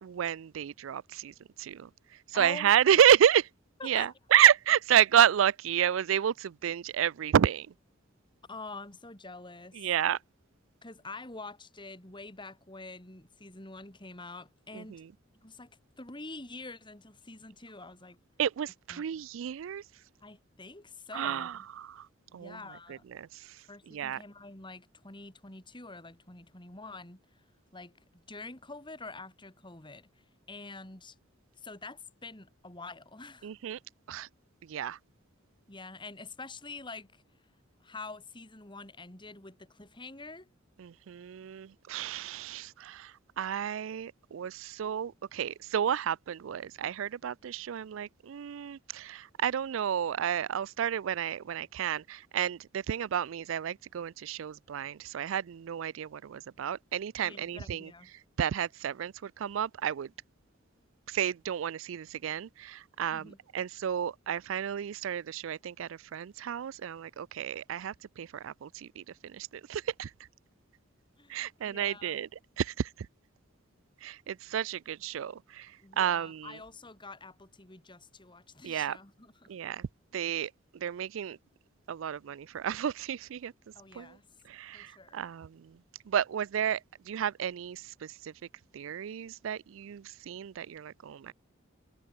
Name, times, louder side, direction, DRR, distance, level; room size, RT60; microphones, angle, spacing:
voice 1, 0.0-1.9 2.3-3.4 3.8-7.7 9.8-10.2 14.7-15.0 18.4-19.8 21.1-21.5 21.9-22.1 22.3-22.6 23.1-23.4 23.9-24.2 33.4-33.8 34.1-34.3 34.7-35.0 40.8-57.9 58.4-60.1 61.1-70.1 71.3-72.3 72.6-72.9 74.0-75.7 76.0-76.5 78.6-79.0 79.5-79.9 80.1-81.4 81.9-83.5 83.9-84.2 84.5-85.8 86.1-86.8 87.1-88.3 88.7-91.3, right 9 dB, 70° right, 0.4 m, -30 dB
voice 2, 2.3-3.0 3.8-4.1 8.5-9.9 10.8-15.0 15.4-18.2 18.9-19.2 20.2-21.7 22.3-23.0 23.7-27.4 27.7-31.2 31.6-33.5 35.7-37.2 37.8-40.5 57.2-58.1 63.1-63.4 71.2-72.2 75.8-79.5 83.7-84.3 84.7-85.2, left 3 dB, 25° left, 3.1 m, -46 dB
head